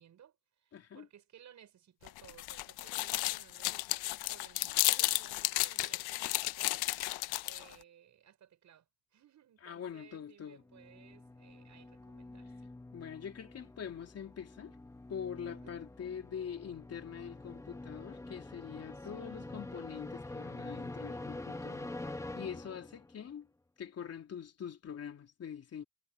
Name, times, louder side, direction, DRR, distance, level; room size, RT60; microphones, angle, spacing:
voice 1, 0.0-7.1 7.4-12.7 15.4-15.7 18.9-19.6, right 9 dB, 45° right, 6.2 m, -60 dB
voice 2, 0.7-1.1 9.6-10.6 12.9-14.8 15.1-23.5 23.8-25.8, left 8 dB, 40° left, 3.5 m, -44 dB
sound 1, 2.1-7.7, left 19 dB, 70° left, 1.1 m, -33 dB
sound 2, 10.6-23.2, left 2 dB, 5° left, 1.1 m, -46 dB
cardioid pair, 120°, 40 cm